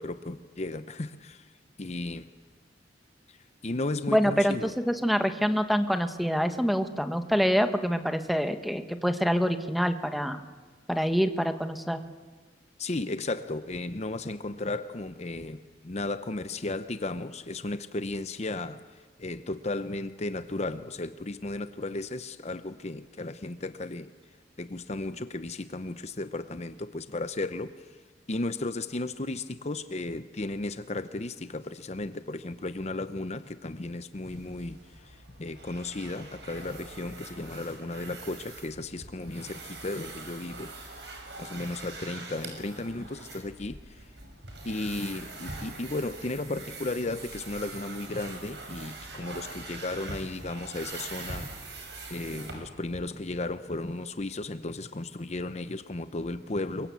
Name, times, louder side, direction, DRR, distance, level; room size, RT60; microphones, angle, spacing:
voice 1, 0.0-1.5 1.8-2.3 3.3-3.4 3.6-4.7 12.8-18.8 19.2-24.1 24.6-27.9 28.3-40.7 41.4-44.1 44.6-51.5 52.1-56.9, left 2 dB, 40° left, 11 dB, 0.8 m, -34 dB
voice 2, 4.1-10.4 10.9-12.0, equal, ahead, 8 dB, 1.4 m, -26 dB
sound 1, 34.2-53.0, right 3 dB, 70° right, 6.2 m, -43 dB
28.0 x 23.5 x 8.4 m, 1.5 s
head